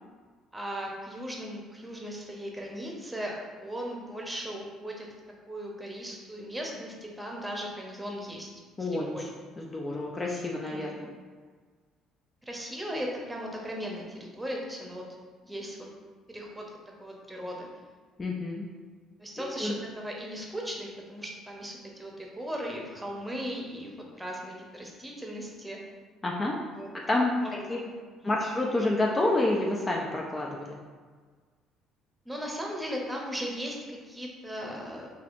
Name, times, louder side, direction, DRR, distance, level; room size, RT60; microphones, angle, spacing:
voice 1, 0.5-5.1 5.5-8.5 8.8-9.3 10.7-10.9 12.5-15.0 15.4-15.9 16.3-16.7 17.0-17.7 19.2-25.8 26.7-26.9 27.3-27.9 28.2-28.4 32.2-35.1, equal, 10° right, -1 dB, 0.9 m, -37 dB
voice 2, 8.8-9.3 9.6-11.1 18.2-18.6 19.6-19.7 26.2-26.6 27.1-27.8 28.2-30.8, left 2 dB, 25° left, -2 dB, 0.5 m, -28 dB
4.1 x 2.8 x 2.6 m, 1.5 s
hypercardioid pair, 65°, 0 cm